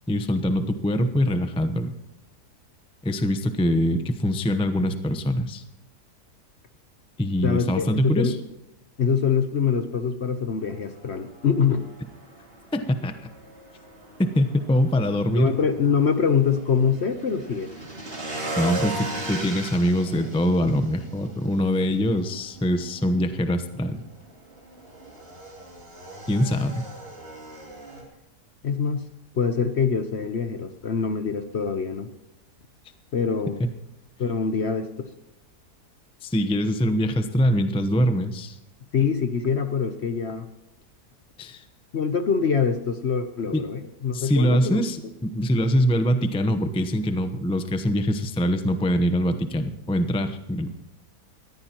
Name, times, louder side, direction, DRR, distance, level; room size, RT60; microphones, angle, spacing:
voice 1, 0.1-1.9 3.0-5.6 7.2-8.3 12.7-13.1 14.2-15.5 18.6-24.0 26.3-26.9 36.2-38.6 41.4-41.6 43.5-43.7 44.1-50.7, equal, 5° left, 8 dB, 0.5 m, -23 dB
voice 2, 7.4-8.4 9.0-11.9 15.4-17.7 28.6-29.1 29.3-32.1 33.1-33.6 34.2-35.1 38.9-40.5 41.9-44.8, left 6 dB, 50° left, 9 dB, 0.9 m, -24 dB
Motorcycle / Engine, 10.6-28.0, right 2 dB, 35° right, 3.4 m, -38 dB
20.5 x 14.5 x 3.0 m, 0.98 s
omnidirectional pair, 1.8 m